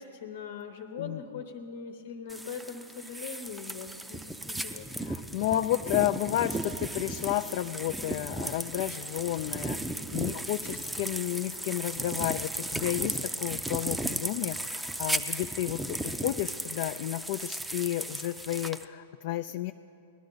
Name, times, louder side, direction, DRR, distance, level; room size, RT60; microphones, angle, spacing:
voice 1, 0.0-4.2 4.5-5.0, left 6 dB, 75° left, 6 dB, 1.1 m, -41 dB
sound 1, 2.3-18.9, right 1 dB, 5° right, 0.5 m, -35 dB
voice 2, 5.0-9.8 10.1-19.7, left 14 dB, 55° left, 9 dB, 0.3 m, -32 dB
19.5 x 11.5 x 3.9 m, 2.7 s
hypercardioid pair, 125°, 0 cm